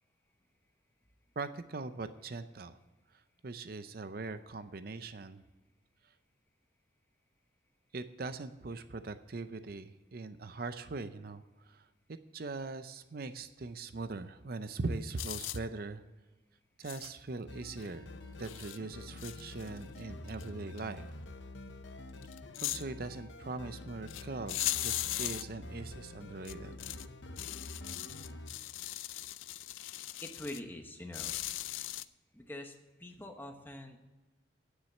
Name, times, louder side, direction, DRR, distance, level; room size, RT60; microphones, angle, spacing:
voice 1, 1.4-2.8 3.1-5.4 6.0-6.1 7.9-16.0 16.8-18.1 18.4-21.1 22.6-26.7, right 3 dB, 50° right, 11 dB, 0.5 m, -41 dB
sound 1, 15.2-15.6 16.9-17.1 17.8-17.9 18.4-18.8 19.2-20.0 20.3-20.4 20.8-20.9 22.2-22.8 24.1-24.2 24.5-25.4 26.5-27.1 27.4-30.6 31.1-32.1, left 15 dB, 85° left, 0.4 m, -38 dB
sound 2, 17.5-28.5, left 2 dB, 70° left, 0.9 m, -47 dB
voice 2, 30.2-31.3 32.3-34.0, left 1 dB, 10° left, 4 dB, 1.0 m, -45 dB
9.6 x 7.4 x 7.3 m, 1.1 s
head